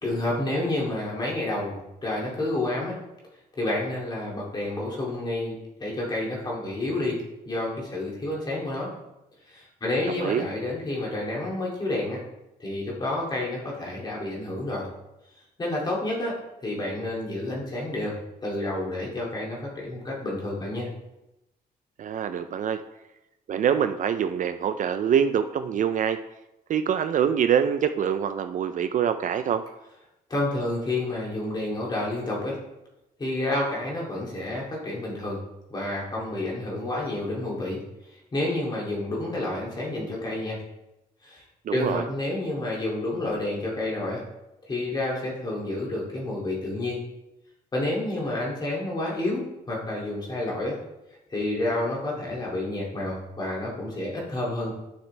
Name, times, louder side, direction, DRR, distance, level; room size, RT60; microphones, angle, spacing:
voice 1, 0.0-3.0 3.6-8.9 9.5-12.2 12.6-14.9 15.6-16.4 16.6-18.2 18.4-20.9 30.3-32.6 33.2-35.4 35.7-37.8 38.1-40.6 41.2-41.4 41.7-44.2 44.7-47.0 47.7-50.8 51.3-54.7, left 2 dB, 25° left, -4 dB, 2.4 m, -29 dB
voice 2, 10.1-10.5 22.0-22.8 23.5-26.2 26.7-29.6 41.7-42.0, right 8 dB, 50° right, 10 dB, 0.4 m, -25 dB
10.5 x 6.0 x 3.2 m, 0.92 s
wide cardioid pair, 170°, 17 cm